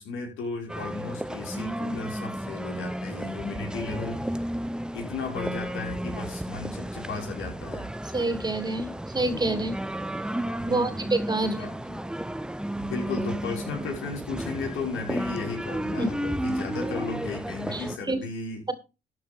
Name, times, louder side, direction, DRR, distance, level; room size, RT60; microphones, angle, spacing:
voice 1, 0.0-4.4 4.9-7.9 10.7-11.1 11.6-11.7 12.8-18.6, left 4 dB, 80° left, 2 dB, 5.6 m, -35 dB
sound 1, 0.7-18.0, right 1 dB, 5° right, 0.8 m, -33 dB
voice 2, 8.1-9.8 10.6-11.6 11.9-12.0 16.0-16.1 17.7-18.2, right 2 dB, 20° right, 9 dB, 2.6 m, -27 dB
13.5 x 9.3 x 3.6 m, 0.29 s
cardioid pair, 90°, 20 cm